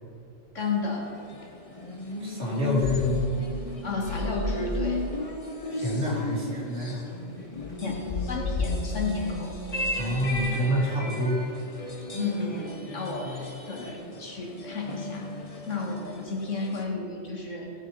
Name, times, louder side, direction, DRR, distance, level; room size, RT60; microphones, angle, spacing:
voice 1, 0.5-1.1 3.8-5.0 7.8-8.0 8.3-9.5 12.2-15.3 15.7-17.7, left 3 dB, 75° left, -1 dB, 2.3 m, -32 dB
sound 1, 0.6-16.8, left 2 dB, 30° left, 1.1 m, -36 dB
voice 2, 2.2-3.2 5.7-7.0 9.9-11.4, left 1 dB, 65° right, -4 dB, 3.2 m, -27 dB
sound 2, 2.8-3.3 4.0-4.7 7.6-10.2, left 3 dB, 55° left, 1.4 m, -33 dB
17.5 x 6.2 x 5.8 m, 3.0 s
omnidirectional pair, 1.3 m